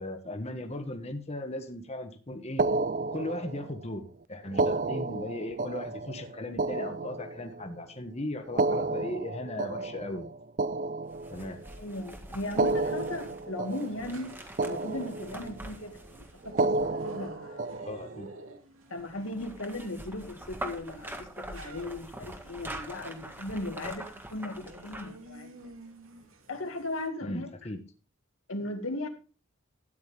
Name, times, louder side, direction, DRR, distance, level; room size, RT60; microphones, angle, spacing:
voice 1, 0.0-2.6 3.1-10.4 11.3-11.6 17.8-18.3 23.8-23.9 27.2-27.8, left 1 dB, 30° left, 1.4 m, -37 dB
sound 1, 2.6-3.8 4.5-7.8 8.4-11.7 12.4-14.3 14.6-15.6 16.5-18.3, right 3 dB, 40° right, 0.5 m, -31 dB
sound 2, 11.1-17.3 18.9-25.3 25.6-25.7, right 1 dB, 10° right, 1.7 m, -44 dB
sound 3, 11.5-27.1, right 2 dB, 85° right, 2.5 m, -53 dB
voice 2, 11.8-14.3 14.6-17.7 18.9-25.7 26.5-27.5 28.5-29.1, left 1 dB, 85° left, 2.2 m, -37 dB
13.5 x 9.5 x 3.5 m
head